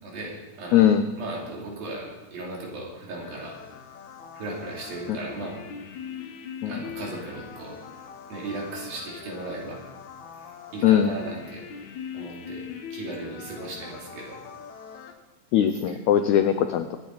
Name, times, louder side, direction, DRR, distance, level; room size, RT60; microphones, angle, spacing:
voice 1, 0.0-0.9 1.2-3.6 4.3-5.6 6.6-7.8 8.3-9.8 10.4-11.6 12.1-12.7 12.9-14.4 15.9-16.0, right 2 dB, 75° right, -3 dB, 4.9 m, -36 dB
voice 2, 0.7-1.1 6.6-6.7 10.8-11.1 15.5-17.0, left 10 dB, 90° left, 8 dB, 1.6 m, -20 dB
sound 1, 3.2-15.1, left 7 dB, 65° left, 2.3 m, -42 dB
24.0 x 9.4 x 4.1 m, 1.1 s
omnidirectional pair, 4.1 m